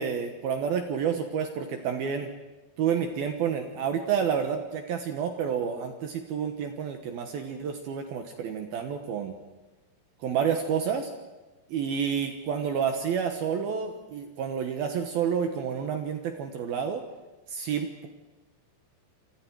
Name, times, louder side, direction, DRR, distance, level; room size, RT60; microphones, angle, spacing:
voice 1, 0.0-2.3 2.8-9.3 10.2-11.1 11.7-17.0 17.5-18.1, right 7 dB, 65° right, 6 dB, 2.7 m, -29 dB
28.0 x 26.0 x 4.8 m, 1.1 s
omnidirectional pair, 5.5 m